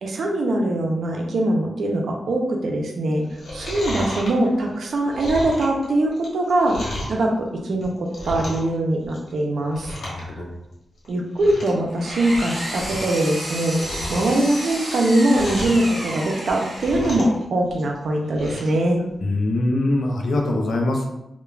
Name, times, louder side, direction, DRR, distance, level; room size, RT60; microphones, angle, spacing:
voice 1, 0.0-3.2 3.5-9.9 11.1-13.8 14.1-19.0, right 1 dB, 70° right, 1 dB, 0.5 m, -22 dB
Chewing mastication, 3.2-7.2 7.7-8.7 9.0-9.4 9.7-10.2 10.5-10.6 11.0-11.1 11.3-11.8 12.2-13.2 13.5-15.9 16.4-17.4 17.7-18.8 19.1-19.2, left 1 dB, 90° left, 1.0 m, -33 dB
voice 2, 10.0-10.5 19.2-21.0, left 2 dB, 65° left, 2 dB, 0.4 m, -23 dB
Engine, 11.7-17.4, right 1 dB, 45° right, 1.3 m, -32 dB
2.3 x 2.1 x 3.1 m, 0.91 s
wide cardioid pair, 130°, 0 cm